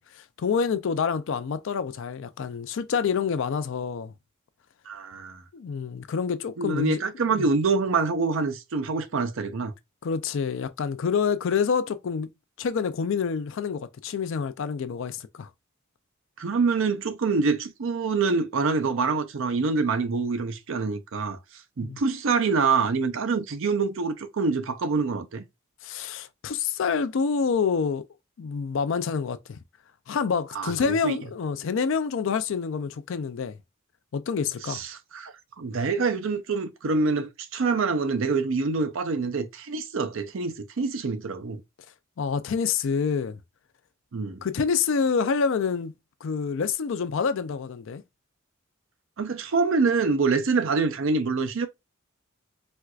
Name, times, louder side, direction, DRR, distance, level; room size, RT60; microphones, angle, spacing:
voice 1, 0.0-4.1 5.5-7.0 7.3-7.5 10.0-12.3 12.6-15.5 21.8-22.0 25.8-28.0 28.4-29.6 30.1-33.6 34.1-34.8 42.2-43.4 44.4-45.9 46.2-48.0, left 6 dB, 65° left, 0.4 m, -27 dB
voice 2, 4.9-5.4 6.6-9.7 16.4-21.4 21.8-25.4 30.5-31.2 34.6-41.6 44.1-44.4 49.2-51.7, right 4 dB, 65° right, 0.5 m, -26 dB
4.3 x 2.4 x 2.3 m
head